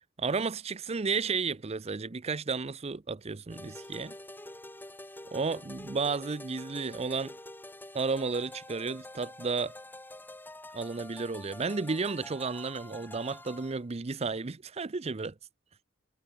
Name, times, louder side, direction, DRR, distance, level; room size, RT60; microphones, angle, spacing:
voice 1, 0.2-4.1 5.3-7.3 7.9-9.7 10.7-15.3, right 4 dB, 30° right, 0.6 m, -32 dB
sound 1, 3.5-13.8, left 1 dB, 10° left, 2.8 m, -47 dB
head